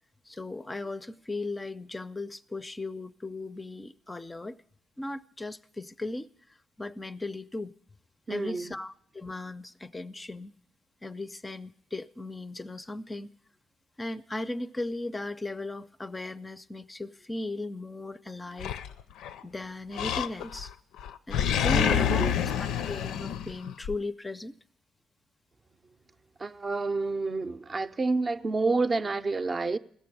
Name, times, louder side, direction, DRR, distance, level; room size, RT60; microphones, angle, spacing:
voice 1, 0.3-4.6 5.0-7.7 8.3-10.5 11.0-13.3 14.0-18.7 19.4-20.7 21.3-24.5, left 2 dB, 15° left, 0.4 m, -37 dB
voice 2, 8.3-8.7 21.7-22.4 26.4-29.8, right 3 dB, 35° right, 0.5 m, -29 dB
Animal, 18.6-19.4 19.9-20.7 21.0-24.0, left 8 dB, 90° left, 0.5 m, -28 dB
15.5 x 6.8 x 9.9 m
cardioid pair, 90°, 0 cm